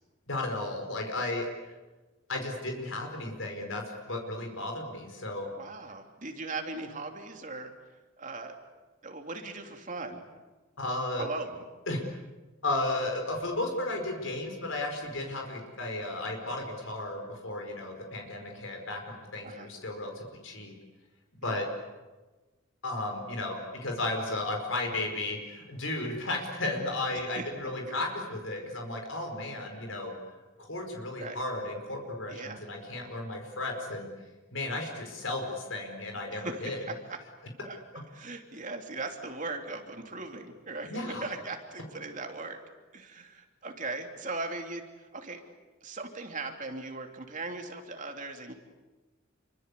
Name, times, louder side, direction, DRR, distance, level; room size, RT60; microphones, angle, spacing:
voice 1, 0.3-1.5 2.3-5.5 10.8-11.3 11.9-12.1 12.6-20.7 21.4-21.7 22.8-30.1 30.6-34.1 34.5-36.8 40.8-41.3, left 2 dB, 75° left, 2 dB, 5.0 m, -34 dB
voice 2, 5.6-7.7 8.2-8.6 9.0-10.2 11.2-11.6 19.4-19.7 21.4-21.7 27.1-27.4 27.9-28.0 31.2-31.4 32.3-32.6 36.3-37.2 37.6-42.6 42.9-45.4 45.8-48.5, right 3 dB, 40° right, 3 dB, 3.0 m, -39 dB
29.0 x 24.0 x 8.4 m, 1.2 s
head